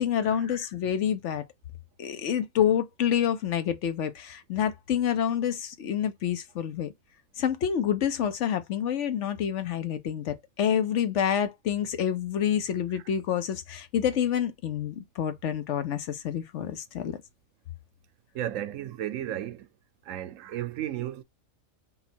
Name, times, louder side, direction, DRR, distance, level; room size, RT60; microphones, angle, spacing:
voice 1, 0.0-1.4 2.0-6.9 7.4-17.2, left 9 dB, 70° left, 0.9 m, -28 dB
voice 2, 18.3-19.7 20.1-21.2, right 12 dB, 75° right, 0.9 m, -34 dB
4.0 x 2.3 x 4.2 m
omnidirectional pair, 1.4 m